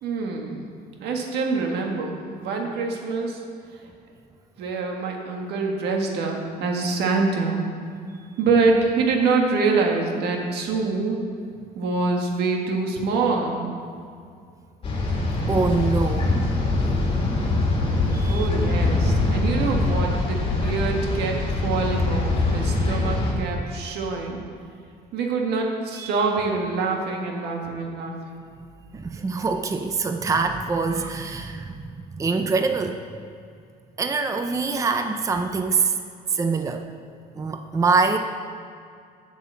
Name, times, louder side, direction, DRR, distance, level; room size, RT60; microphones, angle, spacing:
voice 1, 0.0-0.6 1.0-3.4 4.6-7.6 8.4-11.2 11.7-13.6 18.2-24.4 25.1-28.1, right 4 dB, 80° right, 1 dB, 1.6 m, -25 dB
sound 1, 14.8-23.3, left 2 dB, 35° left, 2.2 m, -23 dB
voice 2, 15.5-16.3 18.0-18.5 26.0-26.1 28.9-33.0 34.0-35.9 36.3-36.8 37.4-38.2, right 4 dB, 20° right, 6 dB, 0.5 m, -24 dB
7.9 x 6.1 x 7.5 m, 2.3 s
cardioid pair, 110°, 17 cm